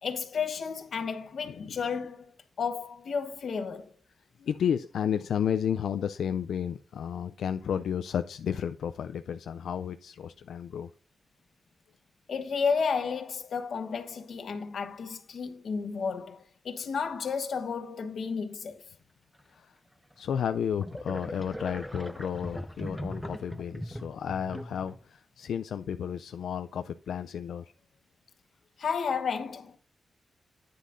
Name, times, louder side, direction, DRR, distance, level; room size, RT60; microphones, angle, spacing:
voice 1, 0.0-2.3 2.6-3.9 12.3-18.8 28.8-29.8, left 5 dB, 65° left, 1.1 m, -32 dB
voice 2, 1.5-1.8 4.4-10.9 19.5-19.7 20.2-27.7, left 8 dB, 90° left, 0.3 m, -32 dB
sound 1, 20.1-20.2 20.8-25.0, equal, ahead, 0.4 m, -39 dB
10.0 x 9.3 x 2.6 m
wide cardioid pair, 115°, 0 cm